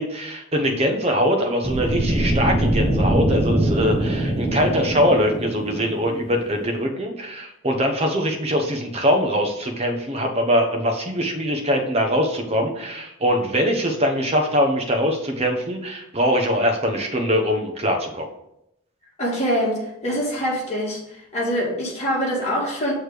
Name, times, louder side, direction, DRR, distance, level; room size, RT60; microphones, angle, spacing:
voice 1, 0.0-18.3, equal, 30° right, 3 dB, 0.8 m, -22 dB
sound 1, 1.6-6.6, right 1 dB, ahead, 0.9 m, -23 dB
voice 2, 19.2-21.0 21.3-22.9, equal, 30° left, -5 dB, 1.8 m, -24 dB
6.4 x 3.2 x 4.9 m, 0.82 s
head